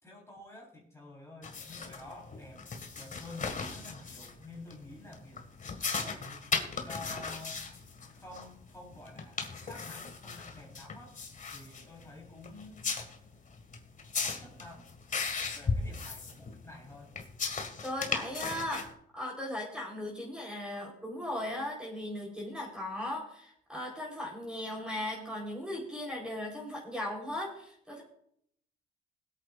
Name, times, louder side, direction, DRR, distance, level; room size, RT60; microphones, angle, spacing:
voice 1, 0.0-2.7 2.9-5.5 6.0-7.7 8.1-11.2 11.5-12.9 14.2-14.9 15.5-17.1, left 2 dB, 15° left, -2 dB, 4.0 m, -49 dB
sound 1, 1.4-18.9, left 4 dB, 40° left, 2.0 m, -38 dB
voice 2, 17.8-18.9 19.1-28.0, left 1 dB, 5° right, -3 dB, 4.0 m, -37 dB
21.0 x 8.6 x 2.5 m, 0.68 s
cardioid pair, 90°, 20 cm